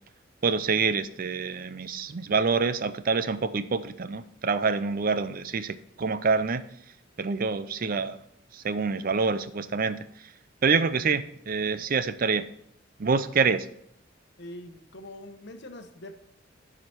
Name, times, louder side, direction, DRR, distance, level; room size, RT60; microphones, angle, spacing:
voice 1, 0.4-6.6 7.2-8.2 8.5-10.0 10.6-12.5 13.0-13.7, right 4 dB, 45° right, 13 dB, 0.5 m, -26 dB
voice 2, 14.4-16.1, left 1 dB, 60° left, 6 dB, 1.0 m, -43 dB
9.6 x 5.0 x 5.9 m, 0.72 s
head